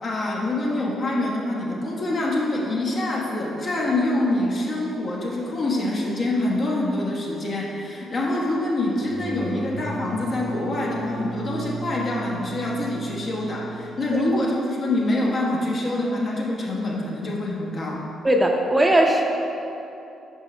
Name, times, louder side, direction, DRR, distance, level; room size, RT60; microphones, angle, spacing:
voice 1, 0.0-18.0, left 1 dB, 55° left, -4 dB, 1.2 m, -25 dB
sound 1, 8.9-14.4, right 3 dB, 85° left, 1.2 m, -35 dB
voice 2, 18.2-19.2, right 1 dB, 20° right, 2 dB, 0.6 m, -18 dB
6.1 x 5.2 x 3.2 m, 2.9 s
hypercardioid pair, 45°, 0 cm